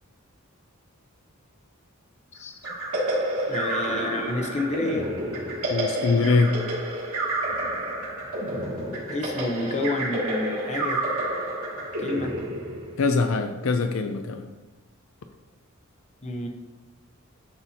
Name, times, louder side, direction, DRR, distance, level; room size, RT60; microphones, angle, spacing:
sound 1, 2.6-13.2, right 1 dB, 85° right, 2.3 m, -29 dB
voice 1, 3.5-5.1 9.1-11.0 12.0-12.3 16.2-16.5, left 2 dB, 30° left, 3 dB, 0.7 m, -29 dB
voice 2, 5.7-6.6 13.0-14.5, left 4 dB, 65° left, 6 dB, 0.4 m, -23 dB
11.0 x 4.2 x 2.8 m, 1.2 s
head